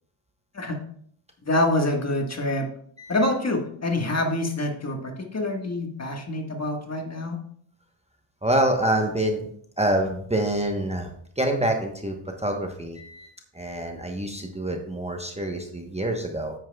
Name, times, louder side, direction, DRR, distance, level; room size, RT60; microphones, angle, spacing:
voice 1, 1.4-2.7 3.1-7.4, left 1 dB, 30° left, 3 dB, 1.6 m, -26 dB
voice 2, 8.4-9.5 9.8-11.1 11.4-13.3 13.5-16.5, right 1 dB, 15° right, 2 dB, 1.0 m, -26 dB
9.5 x 8.6 x 2.3 m, 0.63 s
cardioid pair, 85°, 48 cm